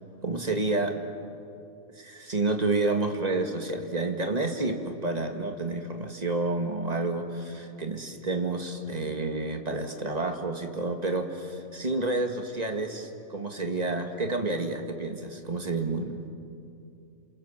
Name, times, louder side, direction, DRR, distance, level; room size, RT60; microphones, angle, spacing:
voice 1, 0.2-1.0 2.0-16.2, right 2 dB, 30° right, 4 dB, 2.1 m, -29 dB
28.5 x 27.5 x 7.4 m, 2.6 s
omnidirectional pair, 1.4 m